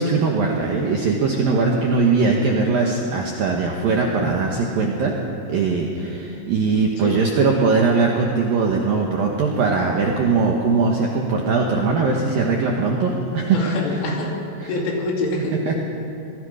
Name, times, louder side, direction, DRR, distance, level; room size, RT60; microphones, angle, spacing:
voice 1, 0.0-5.2 5.5-14.0 14.6-14.7 15.5-15.8, right 4 dB, 70° right, 0 dB, 2.2 m, -20 dB
voice 2, 13.5-14.3 14.7-15.6, left 2 dB, 70° left, -1 dB, 5.1 m, -25 dB
26.0 x 19.5 x 5.1 m, 2.7 s
omnidirectional pair, 6.0 m